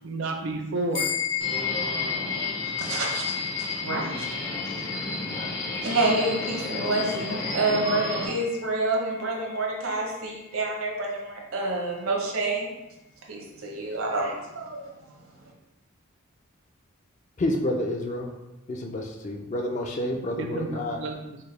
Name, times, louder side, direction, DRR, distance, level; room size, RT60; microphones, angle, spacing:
voice 1, 0.0-1.2 20.4-21.4, right 2 dB, 55° right, 4 dB, 0.5 m, -31 dB
sound 1, 0.9-10.7, left 9 dB, 80° left, 1.0 m, -34 dB
Subway metro underground, 1.4-8.3, left 2 dB, 55° left, 0.8 m, -32 dB
voice 2, 2.8-3.3 3.8-4.3 5.8-12.7 13.3-15.1, right 2 dB, 75° right, 0 dB, 0.8 m, -28 dB
voice 3, 17.4-18.3 18.7-21.0, left 1 dB, 35° left, 3 dB, 0.3 m, -29 dB
4.5 x 2.1 x 3.2 m, 0.97 s
head